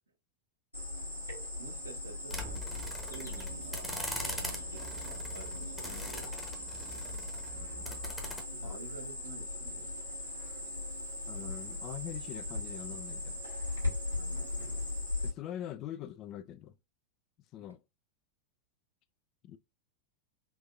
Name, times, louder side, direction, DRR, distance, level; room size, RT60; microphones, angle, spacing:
Cricket, 0.7-15.3, left 2 dB, 85° left, 1.7 m, -39 dB
voice 1, 1.6-6.3 8.5-9.9 14.1-14.9, right 3 dB, 80° right, 0.7 m, -50 dB
sound 1, 2.3-8.4, equal, 5° left, 0.9 m, -42 dB
voice 2, 11.3-13.4 15.2-16.7 17.5-17.8 19.4-19.6, left 11 dB, 35° left, 0.3 m, -43 dB
3.8 x 2.5 x 2.4 m
figure-of-eight pair, 90°, 0 cm